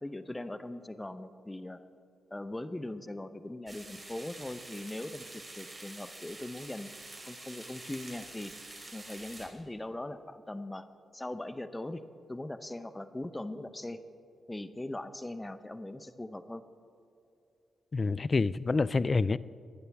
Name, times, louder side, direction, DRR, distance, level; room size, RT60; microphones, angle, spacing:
voice 1, 0.0-1.8 2.3-6.9 7.3-8.5 8.9-10.9 11.1-12.0 12.3-14.0 14.5-16.6, left 1 dB, 15° left, 12 dB, 0.8 m, -40 dB
sound 1, 3.7-9.5, right 2 dB, 30° right, 3.3 m, -47 dB
voice 2, 17.9-19.4, left 3 dB, 40° left, 19 dB, 0.4 m, -27 dB
23.0 x 9.5 x 3.5 m, 2.6 s
supercardioid pair, 50°, 0 cm